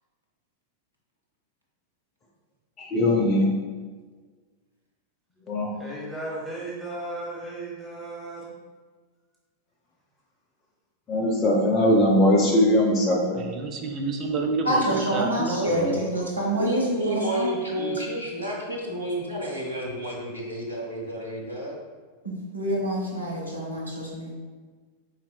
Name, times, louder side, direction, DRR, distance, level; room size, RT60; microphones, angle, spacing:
voice 1, 2.8-3.5 5.5-5.7 11.1-13.4, left 1 dB, 25° left, -3 dB, 0.6 m, -20 dB
voice 2, 5.8-8.5, right 2 dB, 5° right, -6 dB, 1.2 m, -35 dB
voice 3, 13.3-16.0, right 4 dB, 35° right, 4 dB, 0.5 m, -29 dB
voice 4, 14.6-17.9 22.2-24.3, equal, 80° right, -4 dB, 1.0 m, -27 dB
voice 5, 15.5-16.0 16.6-21.8, right 1 dB, 85° left, -2 dB, 0.6 m, -30 dB
4.1 x 4.0 x 2.2 m, 1.4 s
figure-of-eight pair, 90°, 0 cm